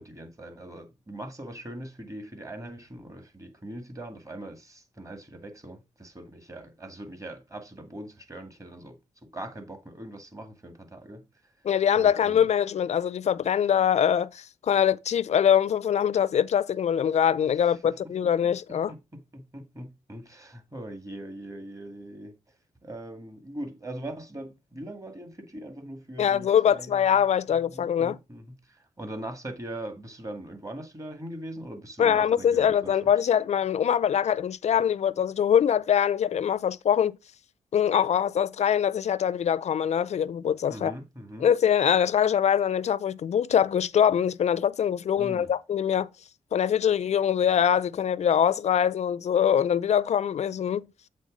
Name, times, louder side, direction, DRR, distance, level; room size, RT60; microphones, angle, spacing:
voice 1, 0.0-11.3 11.9-12.4 17.8-18.0 18.7-22.4 22.8-27.1 27.7-33.1 40.7-41.5 45.2-45.5, right 1 dB, 25° right, 2.1 m, -41 dB
voice 2, 11.6-18.9 26.2-28.2 32.0-37.2 37.7-40.9 41.4-46.1 46.5-50.9, left 8 dB, 60° left, 0.4 m, -23 dB
7.7 x 3.4 x 5.1 m
cardioid pair, 70°, 13 cm